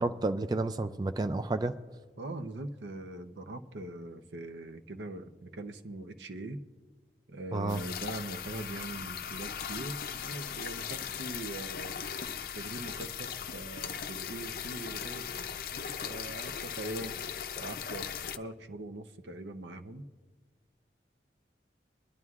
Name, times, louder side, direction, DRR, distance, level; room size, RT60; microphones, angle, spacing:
voice 1, 0.0-1.7 7.5-7.8, right 2 dB, 25° right, 10 dB, 0.3 m, -30 dB
voice 2, 2.2-6.6 7.3-11.9 12.5-17.1 17.6-18.1 18.4-20.0, right 1 dB, 90° right, 8 dB, 0.7 m, -42 dB
sound 1, 7.7-18.4, left 7 dB, 55° left, 0.5 m, -38 dB
23.0 x 11.0 x 2.4 m, 1.4 s
head